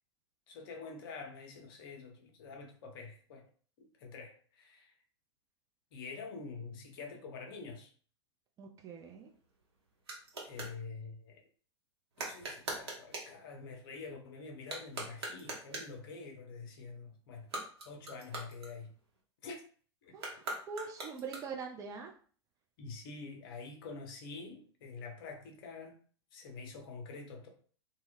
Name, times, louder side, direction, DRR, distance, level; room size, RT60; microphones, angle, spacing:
voice 1, 0.5-3.5 3.8-4.9 5.9-7.9 10.4-11.4 12.2-17.5 17.9-18.9 19.4-19.6 20.0-20.4 22.8-26.0 26.3-27.5, left 4 dB, 50° left, 0.6 m, -47 dB
voice 2, 8.6-9.3 20.1-22.1, right 5 dB, 20° right, 0.4 m, -43 dB
sound 1, 9.0-10.8 12.1-13.4 14.6-16.0 17.3-19.2 20.1-21.7, right 2 dB, 65° right, 0.8 m, -43 dB
2.1 x 2.1 x 3.3 m
figure-of-eight pair, 95°, 15 cm